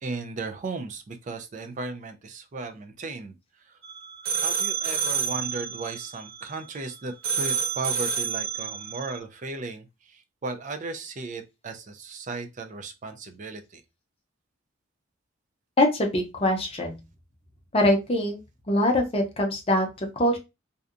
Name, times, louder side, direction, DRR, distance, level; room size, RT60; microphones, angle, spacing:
voice 1, 0.0-3.3 4.4-13.8, right 3 dB, 35° right, 0.4 m, -36 dB
sound 1, 3.8-6.9 7.2-9.2, right 6 dB, 80° right, 0.8 m, -29 dB
voice 2, 15.8-17.0 17.7-18.4 18.7-20.4, left 1 dB, 30° left, 0.6 m, -23 dB
2.7 x 2.2 x 2.4 m
head